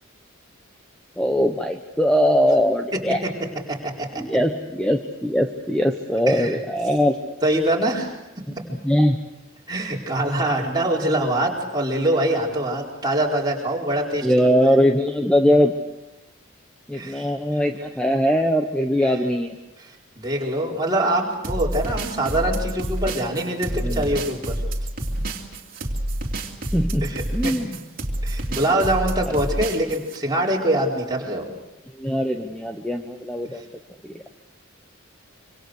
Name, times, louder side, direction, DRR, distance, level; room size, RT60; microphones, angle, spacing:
voice 1, 1.2-3.2 4.2-7.2 8.8-9.2 14.2-15.7 16.9-19.6 23.8-24.1 26.7-27.1 27.3-27.8 31.9-33.6 34.0-34.3, equal, 5° left, 4 dB, 1.0 m, -21 dB
voice 2, 6.3-6.6 7.4-8.2 9.7-14.5 16.9-17.3 19.8-24.6 27.0-27.6 28.2-31.5 33.5-33.6, right 1 dB, 20° right, -2 dB, 4.5 m, -24 dB
sound 1, 21.4-30.2, right 1 dB, 45° right, 2.9 m, -28 dB
26.0 x 26.0 x 6.5 m, 0.96 s
head